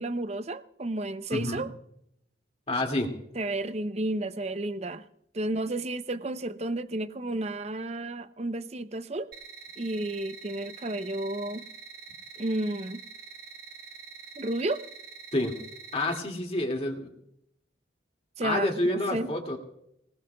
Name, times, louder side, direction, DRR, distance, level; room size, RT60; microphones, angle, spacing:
voice 1, 0.0-1.7 3.3-5.0 5.3-9.3 9.8-11.7 12.4-13.0 14.4-14.8 18.4-19.3, right 2 dB, 35° right, 0.6 m, -32 dB
voice 2, 1.3-1.6 2.7-3.1 15.3-15.6 15.9-17.1 18.4-19.6, left 1 dB, 35° left, 2.2 m, -28 dB
sound 1, 9.3-16.2, right 5 dB, 55° right, 1.5 m, -46 dB
24.5 x 19.0 x 2.3 m
head